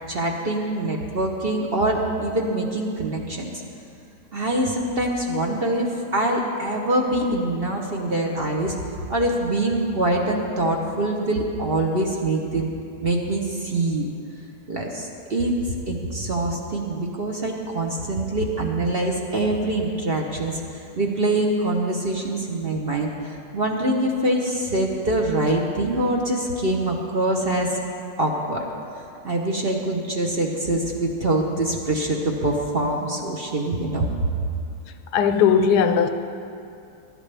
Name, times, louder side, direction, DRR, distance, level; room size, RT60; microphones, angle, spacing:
voice 1, 0.1-3.5 4.3-8.7 9.1-12.7 13.0-14.1 14.7-20.6 21.0-27.7 28.2-28.6 29.2-34.1, right 1 dB, 45° right, 0 dB, 1.0 m, -24 dB
voice 2, 35.1-36.1, left 7 dB, 80° left, 9 dB, 1.2 m, -18 dB
16.5 x 12.5 x 3.4 m, 2.6 s
omnidirectional pair, 1.8 m